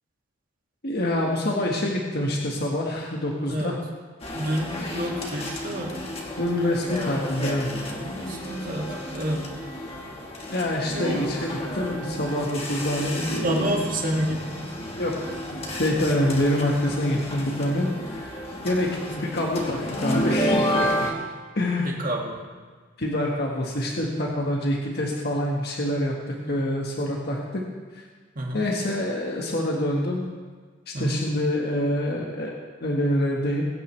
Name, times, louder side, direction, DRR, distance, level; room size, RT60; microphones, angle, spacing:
voice 1, 0.8-3.7 6.4-7.7 10.5-13.8 15.0-18.4 18.6-21.1 21.5-22.0 23.0-27.6 27.9-28.1 28.5-30.2 30.9-32.5 32.8-33.6, left 1 dB, 55° left, -1 dB, 1.6 m, -26 dB
voice 2, 3.5-3.8 4.3-6.0 7.8-10.0 10.9-11.2 13.4-14.7 21.1-21.3 22.0-22.4 24.2-24.3 26.4-26.6 28.4-28.7 30.9-31.2, right 1 dB, 45° right, -1 dB, 2.3 m, -29 dB
sound 1, 4.2-21.1, equal, 30° left, 1.7 m, -31 dB
22.5 x 9.3 x 3.4 m, 1.5 s
head